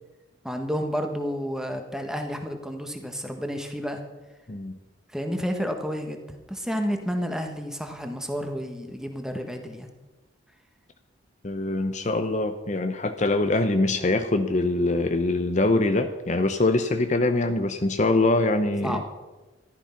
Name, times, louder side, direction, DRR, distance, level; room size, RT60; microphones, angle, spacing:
voice 1, 0.4-4.0 5.1-9.9 18.8-19.1, equal, 5° right, 4 dB, 1.5 m, -30 dB
voice 2, 11.4-19.0, left 2 dB, 35° left, 7 dB, 0.8 m, -23 dB
14.0 x 12.0 x 5.8 m, 1.2 s
head